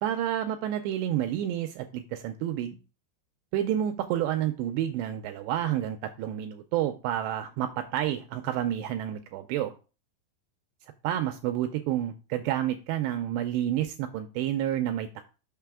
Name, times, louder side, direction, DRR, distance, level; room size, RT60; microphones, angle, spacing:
voice 1, 0.0-2.8 3.5-9.7 11.0-15.2, right 11 dB, 85° right, 7 dB, 2.5 m, -29 dB
6.6 x 6.1 x 3.5 m, 0.34 s
omnidirectional pair, 5.5 m